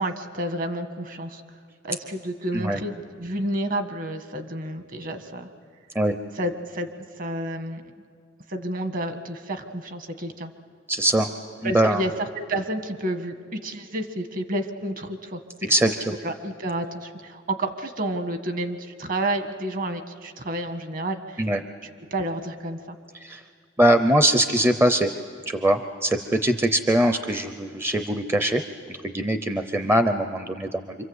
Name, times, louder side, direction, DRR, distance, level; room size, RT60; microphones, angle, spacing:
voice 1, 0.0-1.4 1.8-5.5 6.4-6.9 7.2-7.8 8.5-10.5 11.6-15.7 16.2-21.4 22.1-23.0, right 1 dB, 45° right, 7 dB, 1.5 m, -30 dB
voice 2, 10.9-11.3 11.6-12.0 15.7-16.2 21.4-21.6 23.2-23.4 23.8-25.1 25.5-28.6 28.9-30.9, right 1 dB, 10° right, 8 dB, 0.6 m, -22 dB
26.5 x 25.0 x 8.0 m, 2.2 s
head